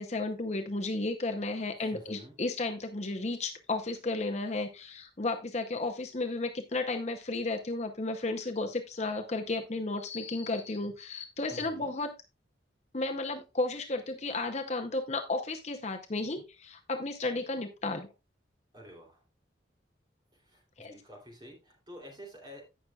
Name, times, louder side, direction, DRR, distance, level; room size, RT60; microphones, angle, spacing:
voice 1, 0.0-12.1 12.9-18.1 20.8-20.9, left 2 dB, 35° left, 5 dB, 0.7 m, -33 dB
voice 2, 1.8-2.3 11.5-12.0 18.7-19.2 20.3-22.7, equal, 20° right, 0 dB, 3.1 m, -49 dB
16.5 x 6.0 x 2.3 m, 0.26 s
head